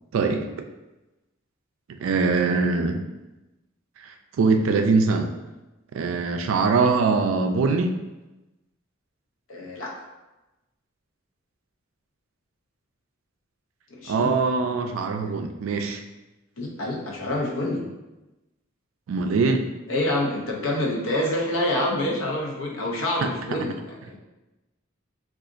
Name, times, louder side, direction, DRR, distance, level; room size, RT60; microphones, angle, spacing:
voice 1, 0.1-0.6 2.0-3.1 4.0-5.3 5.9-8.0 14.1-16.0 19.1-19.7 23.2-23.3, right 4 dB, 80° right, 5 dB, 0.3 m, -22 dB
voice 2, 9.5-9.9 13.9-14.3 16.6-17.8 19.9-24.2, left 1 dB, 75° left, -2 dB, 0.7 m, -27 dB
3.8 x 2.4 x 2.5 m, 1.0 s
head